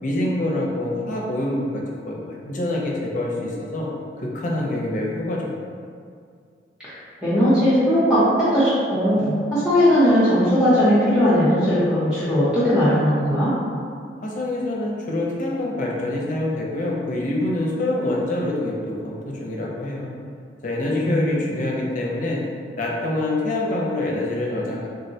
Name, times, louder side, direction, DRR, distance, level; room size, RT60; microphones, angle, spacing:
voice 1, 0.0-3.9 4.2-5.6 14.2-20.1 20.6-22.4 22.8-24.9, left 1 dB, 45° left, -3 dB, 0.5 m, -26 dB
voice 2, 7.2-13.5 21.0-21.4, equal, 5° right, -13 dB, 0.7 m, -18 dB
3.6 x 2.1 x 2.7 m, 2.2 s
head